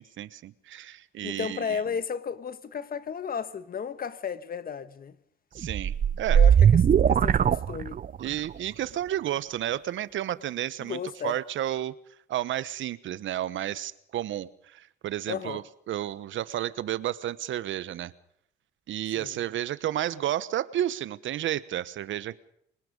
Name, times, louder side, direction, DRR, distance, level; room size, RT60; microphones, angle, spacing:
voice 1, 0.0-1.8 5.5-6.4 8.2-11.9 12.3-15.6 15.9-18.1 18.9-22.4, right 12 dB, 75° right, 1.1 m, -32 dB
voice 2, 1.2-5.2 6.3-8.0 10.8-11.4 15.3-15.6 19.2-19.4, left 7 dB, 45° left, 1.5 m, -34 dB
sound 1, 5.6-8.3, right 8 dB, 45° right, 0.7 m, -20 dB
25.5 x 19.5 x 5.3 m
cardioid pair, 90°, 20 cm